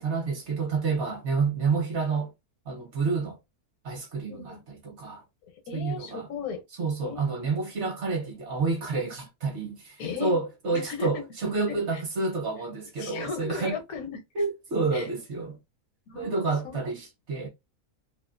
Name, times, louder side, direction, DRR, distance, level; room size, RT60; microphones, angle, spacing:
voice 1, 0.0-2.3 2.7-3.4 3.8-5.2 5.7-6.3 6.8-13.8 14.3-15.6 16.1-17.5, right 4 dB, 55° right, 1.0 m, -29 dB
voice 2, 4.3-4.6 5.7-6.6 7.0-7.3 10.0-10.4 10.7-11.2 11.7-12.0 13.0-14.2 14.9-15.1 16.1-16.8, left 6 dB, 75° left, 1.2 m, -36 dB
2.7 x 2.4 x 2.4 m
omnidirectional pair, 1.6 m